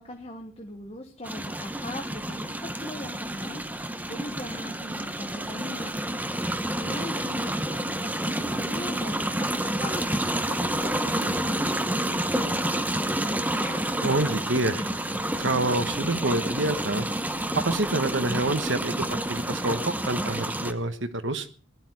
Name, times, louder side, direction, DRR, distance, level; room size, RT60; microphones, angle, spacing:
voice 1, 0.0-3.7 4.1-5.9 6.6-13.8, left 1 dB, 30° left, 4 dB, 1.4 m, -40 dB
sound 1, 1.2-20.7, right 1 dB, 10° right, 1.0 m, -29 dB
voice 2, 14.0-14.9 15.4-17.1 17.5-21.5, right 2 dB, 65° right, 10 dB, 1.3 m, -27 dB
20.0 x 12.0 x 4.8 m, 0.39 s
head